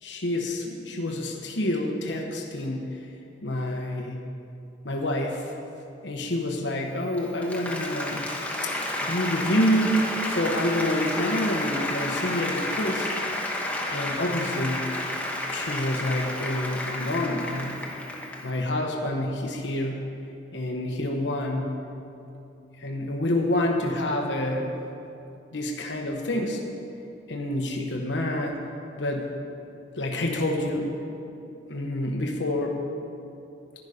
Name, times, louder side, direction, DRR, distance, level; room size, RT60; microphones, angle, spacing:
voice 1, 0.0-3.0 3.4-4.3 4.8-5.5 6.0-8.3 8.6-8.7 9.0-10.0 10.3-13.1 13.9-14.9 15.5-17.9 18.4-20.1 20.5-21.8 22.8-24.7 25.5-26.6 27.3-28.7 29.0-29.4 30.0-31.0 31.7-32.8, left 1 dB, 70° left, 1 dB, 1.1 m, -28 dB
Applause, 7.0-18.6, left 1 dB, 10° left, 1.1 m, -31 dB
11.0 x 11.0 x 5.1 m, 2.7 s
head